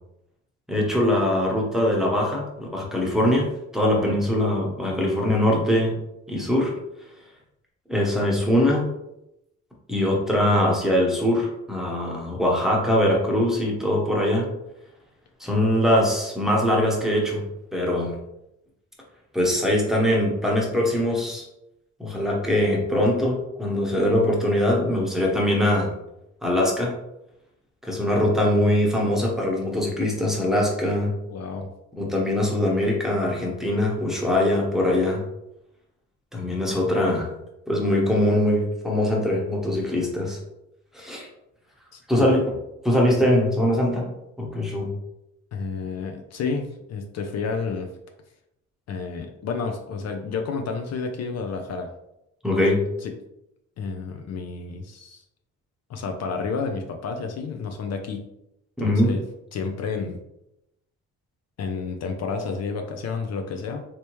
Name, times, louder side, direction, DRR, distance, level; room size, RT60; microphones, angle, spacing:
voice 1, 0.7-3.5 3.7-6.0 6.3-6.7 7.9-8.9 9.9-14.5 15.4-17.4 17.7-18.1 19.3-21.4 22.0-25.9 26.4-26.9 27.8-31.1 32.0-35.2 36.3-37.3 37.7-40.4 40.9-41.3 42.1-42.4 42.8-44.1 44.4-44.9 52.4-52.8 58.8-59.1, left 1 dB, ahead, -3 dB, 1.0 m, -22 dB
voice 2, 31.3-31.7 41.9-42.3 45.5-47.9 48.9-51.9 53.0-53.1 53.8-55.2 55.9-58.2 58.8-59.2 59.5-60.2 61.6-63.8, left 5 dB, 60° left, 4 dB, 0.5 m, -30 dB
3.3 x 2.9 x 3.0 m, 0.85 s
cardioid pair, 90°, 30 cm